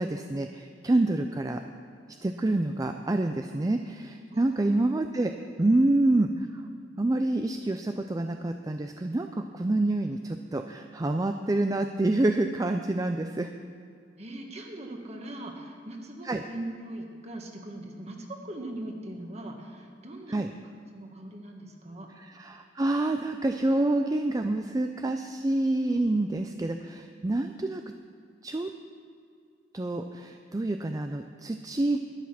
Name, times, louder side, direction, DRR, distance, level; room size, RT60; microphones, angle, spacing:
voice 1, 0.0-1.6 2.2-5.3 5.6-6.3 7.0-13.5 16.2-16.4 20.3-20.5 22.3-27.8 28.4-28.7 29.7-32.0, right 2 dB, 20° right, 6 dB, 0.4 m, -27 dB
voice 2, 4.3-4.8 5.7-5.9 14.2-22.1, right 1 dB, 35° right, 2 dB, 1.6 m, -41 dB
12.5 x 11.0 x 6.0 m, 2.3 s
head